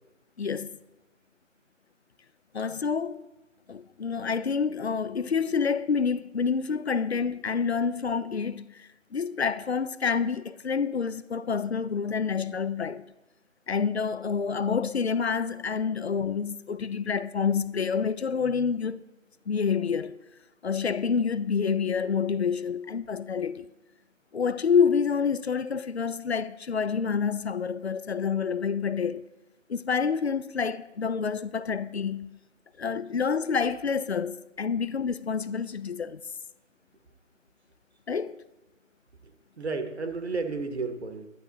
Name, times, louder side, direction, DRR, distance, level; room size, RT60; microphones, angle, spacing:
voice 1, 0.4-0.8 2.5-3.3 3.7-13.0 13.7-19.0 19.5-20.2 20.6-23.7 24.3-29.2 29.7-32.3 32.8-36.2 38.1-38.4, left 6 dB, 55° left, 0.5 m, -28 dB
voice 2, 39.2-41.3, right 4 dB, 55° right, 1.1 m, -33 dB
11.5 x 10.5 x 3.8 m
figure-of-eight pair, 165°, 39 cm